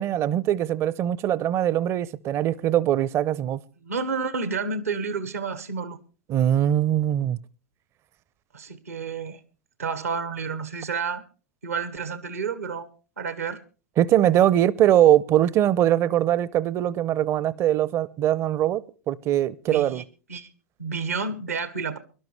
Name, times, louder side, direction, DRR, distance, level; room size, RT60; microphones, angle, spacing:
voice 1, 0.0-3.6 6.3-7.4 14.0-20.0, right 11 dB, 35° right, 0.7 m, -22 dB
voice 2, 3.8-6.0 8.5-9.4 9.8-11.2 11.6-12.9 13.2-13.6 19.7-20.0 20.3-20.5 20.8-22.0, right 5 dB, 75° right, 1.4 m, -30 dB
23.0 x 12.0 x 3.3 m
figure-of-eight pair, 85°, 8 cm